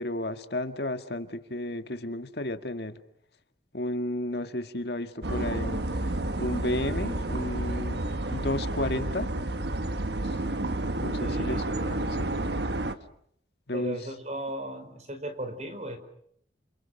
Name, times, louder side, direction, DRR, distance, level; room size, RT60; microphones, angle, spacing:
voice 1, 0.0-3.0 3.7-5.8 6.4-9.3 10.2-10.3 11.0-12.3 13.7-14.0, left 1 dB, 65° left, 8 dB, 1.8 m, -33 dB
sound 1, 5.2-13.0, right 1 dB, 70° right, 1.5 m, -30 dB
voice 2, 11.2-11.7 13.7-16.0, right 1 dB, 40° right, 9 dB, 4.9 m, -36 dB
29.5 x 28.5 x 6.6 m, 0.69 s
head